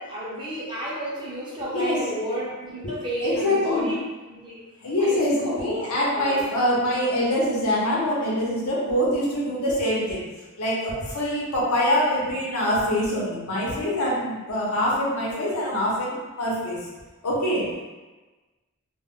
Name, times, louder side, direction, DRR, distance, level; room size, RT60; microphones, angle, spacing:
voice 1, 0.0-4.0 4.3-4.6 5.0-6.4, equal, 20° right, -7 dB, 0.6 m, -31 dB
voice 2, 1.6-2.0 2.8-2.9 3.2-3.9 4.8-10.2 10.6-16.8 17.2-17.7, left 1 dB, 75° left, -5 dB, 0.8 m, -24 dB
2.2 x 2.1 x 3.5 m, 1.2 s
head